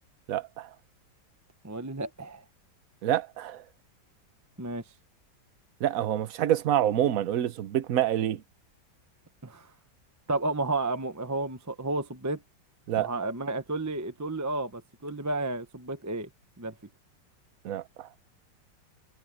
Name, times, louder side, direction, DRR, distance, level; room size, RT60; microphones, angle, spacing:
voice 1, 0.3-0.7 3.0-3.6 5.8-8.4 12.9-13.1 17.6-18.1, right 11 dB, 60° right, 1.1 m, -27 dB
voice 2, 1.6-2.4 4.6-4.8 9.4-9.7 10.3-12.4 13.0-16.3 16.6-16.7, right 2 dB, 15° right, 0.8 m, -32 dB
omnidirectional pair, 1.9 m